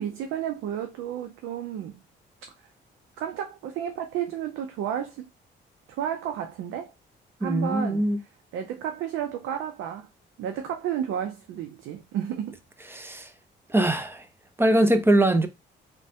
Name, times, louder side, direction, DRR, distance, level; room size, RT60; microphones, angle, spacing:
voice 1, 0.0-2.0 3.2-5.3 5.9-6.9 7.4-8.0 8.5-10.1 10.4-12.6, right 9 dB, 85° right, 0.5 m, -32 dB
voice 2, 7.4-8.2 12.9-13.3 13.7-14.3 14.6-15.5, right 1 dB, 10° right, 0.4 m, -22 dB
3.2 x 2.1 x 2.7 m
cardioid pair, 90°, 20 cm